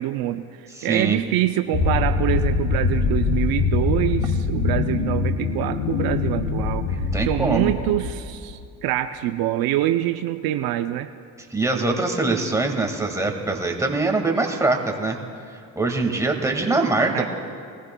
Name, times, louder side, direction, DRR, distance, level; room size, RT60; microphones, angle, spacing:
voice 1, 0.0-11.1 17.1-17.2, right 13 dB, 70° right, 9 dB, 0.6 m, -25 dB
voice 2, 0.8-1.2 6.8-7.7 11.5-15.2 15.8-17.2, right 3 dB, 10° right, 2 dB, 1.8 m, -23 dB
sound 1, 1.7-8.5, left 5 dB, 75° left, 1.5 m, -23 dB
21.5 x 15.0 x 2.2 m, 2.4 s
supercardioid pair, 80°, 38 cm